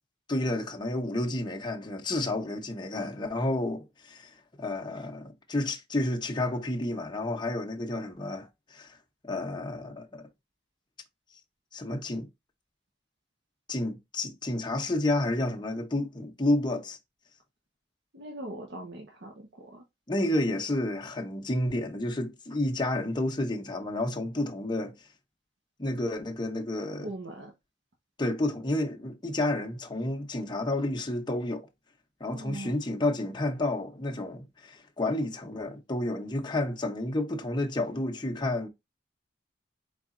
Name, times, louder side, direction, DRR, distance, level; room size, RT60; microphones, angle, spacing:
voice 1, 0.3-4.3 4.6-9.0 9.2-10.3 11.7-12.3 13.7-17.0 20.1-24.9 25.8-27.1 28.2-31.7 32.2-38.7, left 1 dB, 25° left, 0.9 m, -30 dB
voice 2, 18.1-19.8 27.0-27.5 32.3-32.7, right 1 dB, 90° right, 1.1 m, -41 dB
4.6 x 4.0 x 2.5 m
head